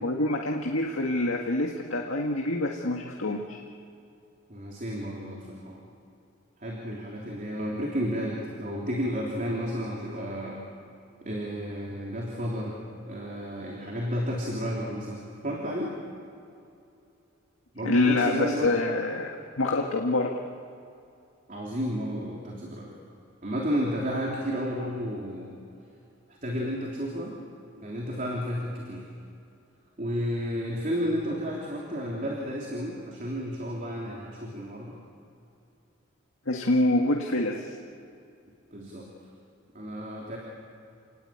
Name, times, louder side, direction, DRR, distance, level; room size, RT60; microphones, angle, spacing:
voice 1, 0.0-3.6 17.8-20.3 36.5-37.6, left 2 dB, 80° left, 1 dB, 1.8 m, -26 dB
voice 2, 4.5-5.8 6.6-10.6 11.2-12.8 13.1-16.0 17.7-18.7 21.5-22.9 23.4-25.5 26.4-27.4 27.8-29.1 30.0-35.0 38.7-39.1 39.7-40.4, equal, 40° right, -2 dB, 3.5 m, -32 dB
29.5 x 19.0 x 8.8 m, 2.6 s
head